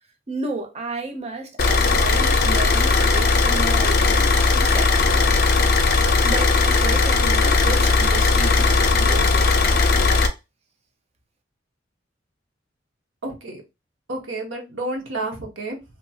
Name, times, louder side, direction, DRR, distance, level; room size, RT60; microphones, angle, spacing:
voice 1, 0.3-5.1 6.2-9.8, right 3 dB, 35° right, 0.6 m, -32 dB
Car / Idling, 1.6-10.3, left 3 dB, 50° left, 0.4 m, -18 dB
voice 2, 13.2-13.6 14.1-15.8, right 2 dB, 85° right, 0.9 m, -30 dB
2.8 x 2.3 x 2.7 m
head